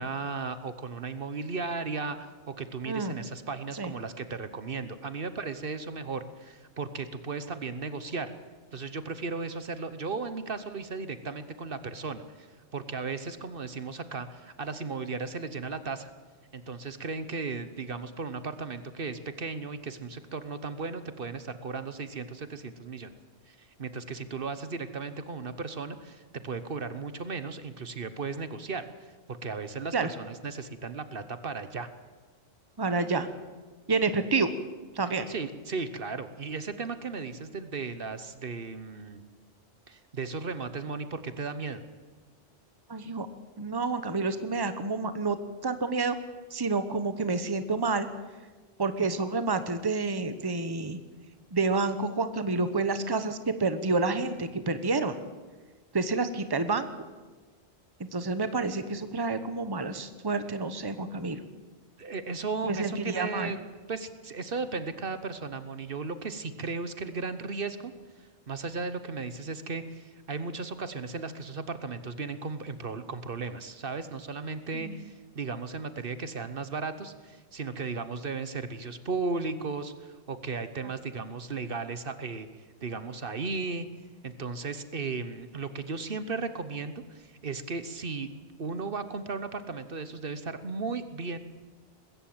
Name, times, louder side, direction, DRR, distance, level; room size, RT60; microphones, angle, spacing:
voice 1, 0.0-8.3 8.7-16.1 16.5-23.1 23.5-28.9 29.3-31.9 35.3-39.2 39.9-41.8 62.0-63.6 63.9-67.9 68.2-83.9 84.2-88.3 88.6-91.4, right 4 dB, 60° right, 11 dB, 1.2 m, -36 dB
voice 2, 2.9-3.2 3.8-3.9 29.9-30.1 32.8-33.3 33.9-34.5 34.9-35.3 42.9-43.3 43.6-45.4 45.6-46.2 46.5-48.1 48.8-51.0 51.5-55.2 55.9-56.9 58.0-61.4 62.6-63.5 74.7-74.9, right 3 dB, 25° right, 11 dB, 1.1 m, -29 dB
21.0 x 15.5 x 8.8 m, 1.3 s
omnidirectional pair, 1.1 m